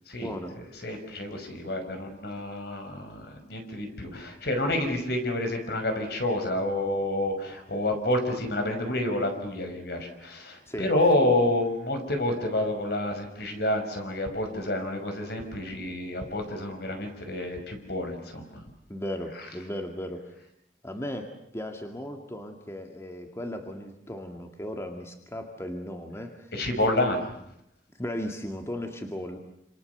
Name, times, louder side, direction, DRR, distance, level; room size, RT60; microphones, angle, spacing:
voice 1, 0.2-0.6 10.7-10.9 18.9-20.3 20.8-26.5 28.0-29.4, left 1 dB, 15° left, 4 dB, 2.2 m, -36 dB
voice 2, 0.8-18.4 26.5-27.3, left 1 dB, 65° left, 5 dB, 5.9 m, -28 dB
28.0 x 27.5 x 6.9 m, 0.77 s
head